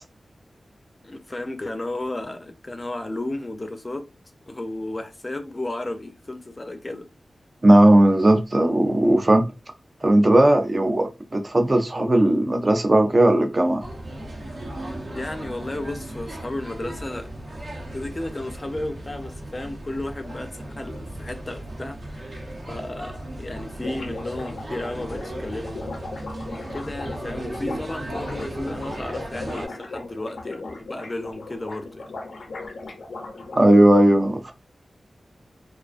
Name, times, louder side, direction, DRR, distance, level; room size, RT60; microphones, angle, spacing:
voice 1, 1.0-4.1 4.5-7.1 15.1-17.3 17.7-22.3 22.7-25.9 26.7-32.0, left 2 dB, 30° left, 0.5 m, -33 dB
voice 2, 7.6-9.4 10.0-13.8 33.6-34.5, right 1 dB, 35° right, 0.5 m, -17 dB
sound 1, 13.8-29.7, right 1 dB, 70° right, 0.8 m, -36 dB
sound 2, 22.8-22.9 23.1-23.2 23.4-33.7, left 3 dB, 85° left, 0.5 m, -37 dB
2.4 x 2.2 x 2.4 m
wide cardioid pair, 65°, 0 cm